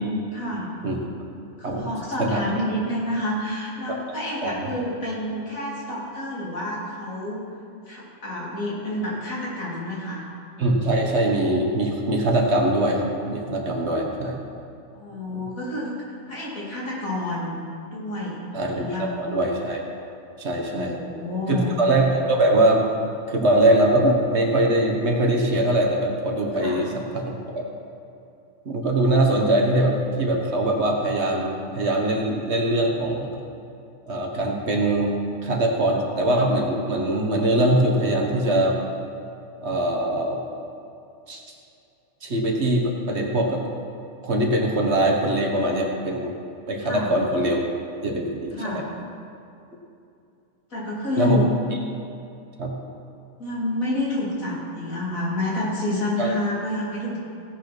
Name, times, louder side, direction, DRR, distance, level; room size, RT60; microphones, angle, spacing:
voice 1, 0.3-0.7 1.6-7.4 7.9-10.2 14.9-17.6 17.9-18.4 18.7-19.1 20.7-21.7 26.5-26.8 46.8-47.1 48.5-48.8 50.7-51.5 53.4-57.2, left 1 dB, 70° left, -6 dB, 3.1 m, -29 dB
voice 2, 10.6-14.4 15.3-15.4 18.5-19.8 20.4-21.0 21.5-22.9 23.3-27.7 28.6-33.3 34.1-35.1 35.4-38.8 39.6-40.4 41.3-41.4 42.2-43.6 44.2-46.4 46.7-47.6 48.0-48.8 51.2-51.4 52.6-52.7 56.2-56.3, right 1 dB, 50° right, 1 dB, 1.5 m, -22 dB
16.5 x 5.9 x 6.0 m, 2.6 s
omnidirectional pair, 1.5 m